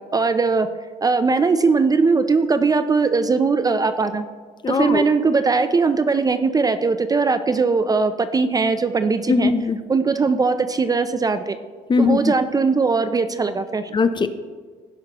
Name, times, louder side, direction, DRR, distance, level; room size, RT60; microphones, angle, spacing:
voice 1, 0.1-0.7 1.0-4.2 4.7-9.5 9.9-11.6 12.0-13.9, right 4 dB, 20° right, 11 dB, 0.4 m, -20 dB
voice 2, 4.6-5.0 9.3-9.8 11.9-12.3 13.9-14.3, left 4 dB, 25° left, 11 dB, 0.6 m, -19 dB
16.5 x 5.9 x 2.9 m, 1.5 s
cardioid pair, 110°, 17 cm